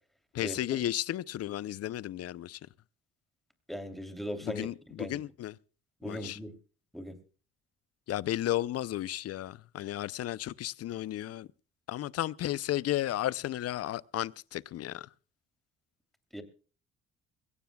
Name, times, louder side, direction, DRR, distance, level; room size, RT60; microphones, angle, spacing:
voice 1, 0.3-2.6 4.4-5.6 6.0-6.4 8.1-11.5 11.9-15.1, left 13 dB, 55° left, 0.6 m, -33 dB
voice 2, 3.7-4.7 5.0-5.2 6.0-6.5 6.9-7.2 16.3-16.4, equal, ahead, 3.1 m, -38 dB
22.0 x 17.0 x 2.3 m
supercardioid pair, 80°, 30 cm